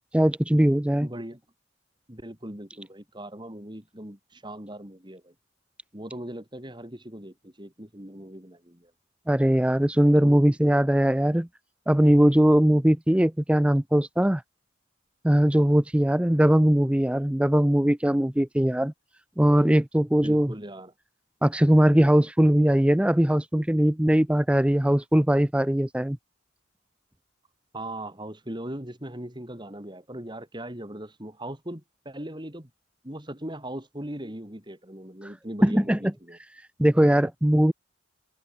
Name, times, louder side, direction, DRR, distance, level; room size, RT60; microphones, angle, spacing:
voice 1, 0.0-1.1 9.3-11.5 11.9-14.4 15.2-18.9 19.4-20.5 21.4-26.2 35.2-35.3 35.6-36.0 36.8-37.7, equal, 5° right, 0.5 m, -20 dB
voice 2, 1.0-1.4 2.1-5.3 5.9-8.9 10.2-10.4 20.2-20.9 27.7-32.7 33.0-36.4, right 1 dB, 25° right, 3.5 m, -39 dB
head